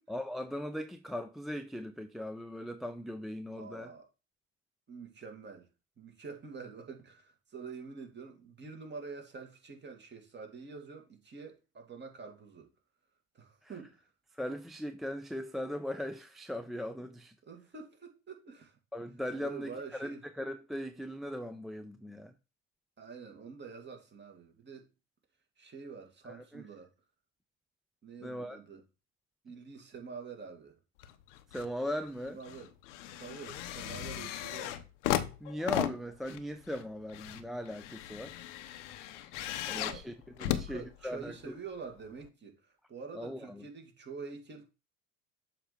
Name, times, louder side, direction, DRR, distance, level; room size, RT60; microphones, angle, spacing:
voice 1, 0.1-3.9 13.6-13.7 14.3-17.3 18.9-22.3 26.2-26.7 28.2-28.6 31.5-32.4 35.4-38.4 39.7-41.6 43.1-43.6, left 1 dB, ahead, 0.4 m, -39 dB
voice 2, 3.6-4.0 4.9-5.7 6.0-12.7 13.3-14.0 17.5-18.7 19.4-20.2 23.0-24.9 25.6-26.9 28.0-28.8 29.4-30.8 32.3-32.7 33.2-34.8 39.5-40.0 40.4-42.6 42.9-44.7, right 5 dB, 30° right, 2.0 m, -46 dB
sound 1, 31.0-31.7 32.1-41.5 42.2-42.3, left 12 dB, 85° left, 0.7 m, -37 dB
7.2 x 2.9 x 5.0 m
hypercardioid pair, 80°, 35 cm